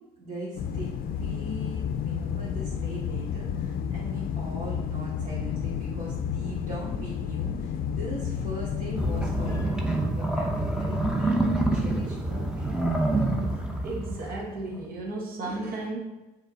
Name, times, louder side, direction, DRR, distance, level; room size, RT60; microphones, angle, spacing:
voice 1, 0.2-12.7, right 1 dB, 45° right, -8 dB, 2.2 m, -40 dB
sound 1, 0.6-9.6, left 8 dB, 60° left, 0.5 m, -31 dB
sound 2, 8.9-14.6, right 2 dB, 5° right, 0.8 m, -27 dB
voice 2, 13.8-16.0, right 2 dB, 60° right, -1 dB, 1.3 m, -34 dB
7.2 x 3.5 x 4.0 m, 1.1 s
cardioid pair, 110°, 17 cm